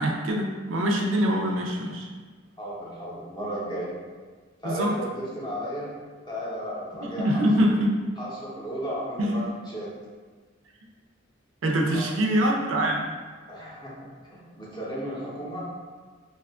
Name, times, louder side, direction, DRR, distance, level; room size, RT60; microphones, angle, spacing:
voice 1, 0.0-2.1 4.6-4.9 7.0-8.0 9.2-9.4 11.6-13.0, equal, 80° right, 0 dB, 0.5 m, -24 dB
voice 2, 2.6-3.9 4.6-5.9 6.3-7.4 8.2-9.9 11.9-12.0 13.5-14.0 14.2-15.7, equal, 25° left, -6 dB, 0.7 m, -34 dB
2.7 x 2.3 x 3.5 m, 1.5 s
head